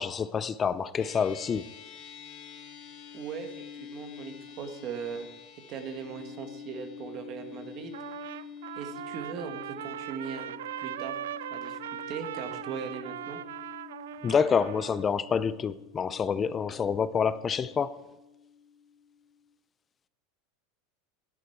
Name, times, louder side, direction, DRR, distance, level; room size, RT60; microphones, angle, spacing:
voice 1, 0.0-1.6 14.2-18.0, left 6 dB, 25° left, 0.4 m, -27 dB
sound 1, 1.0-19.5, left 7 dB, 60° left, 1.9 m, -47 dB
voice 2, 3.1-5.3 5.7-8.0 8.8-11.2 11.5-11.8 12.1-13.4, right 6 dB, 50° right, 1.7 m, -39 dB
Trumpet, 7.9-15.1, right 12 dB, 85° right, 0.3 m, -39 dB
11.5 x 10.5 x 4.6 m
hypercardioid pair, 110°, 0 cm